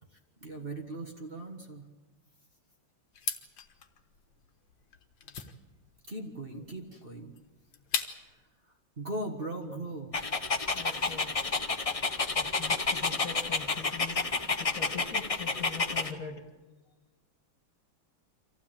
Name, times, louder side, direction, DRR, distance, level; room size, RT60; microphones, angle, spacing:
voice 1, 0.1-1.9 6.1-7.4 8.3-8.4 9.0-10.2, right 2 dB, 30° right, 2 dB, 1.6 m, -39 dB
sound 1, 3.1-8.4, left 7 dB, 70° left, 2.0 m, -39 dB
Dog, 10.1-16.1, left 4 dB, 35° left, 0.6 m, -30 dB
voice 2, 10.7-11.3 11.8-11.9 12.3-14.2 14.6-16.5, left 6 dB, 50° left, 4 dB, 2.2 m, -42 dB
25.5 x 15.5 x 8.9 m, 1.3 s
omnidirectional pair, 2.1 m